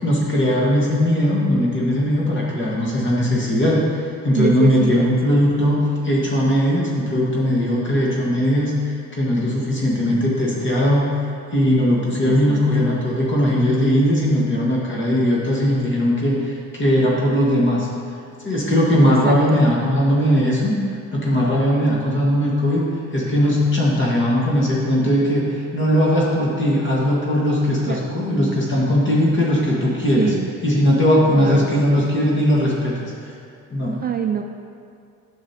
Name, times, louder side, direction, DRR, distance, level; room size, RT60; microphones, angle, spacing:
voice 1, 0.0-11.1 11.5-17.9 18.4-20.8 21.1-22.8 23.1-30.3 30.6-33.3 33.7-34.0, equal, 40° left, -5 dB, 1.6 m, -19 dB
voice 2, 4.4-5.1 12.2-12.6 19.0-19.3 27.9-28.0 30.2-30.5 31.4-32.1 34.0-34.4, right 7 dB, 30° right, 4 dB, 0.4 m, -25 dB
8.6 x 6.1 x 2.9 m, 2.4 s
cardioid pair, 90°, 30 cm